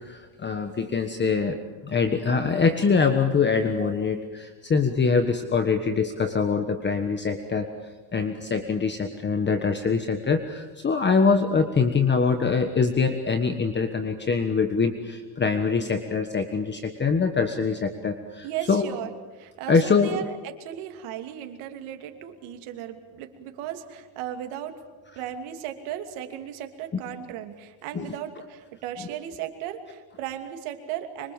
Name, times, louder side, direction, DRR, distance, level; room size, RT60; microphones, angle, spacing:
voice 1, 0.0-7.7 8.1-18.9 19.7-20.2 27.9-28.1, left 5 dB, 20° left, 7 dB, 1.4 m, -24 dB
voice 2, 18.4-24.8 25.1-31.3, right 10 dB, 85° right, 6 dB, 2.9 m, -36 dB
25.5 x 23.5 x 7.3 m, 1.3 s
cardioid pair, 150°, 49 cm